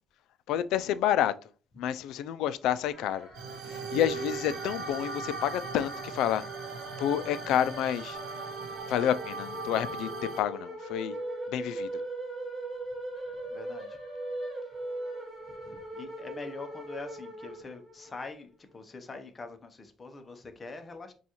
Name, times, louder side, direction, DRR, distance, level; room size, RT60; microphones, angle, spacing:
voice 1, 0.5-1.3 1.8-3.3 3.6-6.4 7.0-8.2 8.9-10.1 10.4-11.2 11.5-11.9, left 10 dB, 75° left, 0.3 m, -29 dB
sound 1, 2.9-18.2, right 1 dB, 15° right, 1.7 m, -40 dB
sound 2, 3.3-10.4, right 4 dB, 65° right, 0.7 m, -39 dB
voice 2, 13.5-14.0 15.6-21.1, left 3 dB, 20° left, 0.6 m, -44 dB
6.8 x 2.3 x 2.9 m
cardioid pair, 180°, 0 cm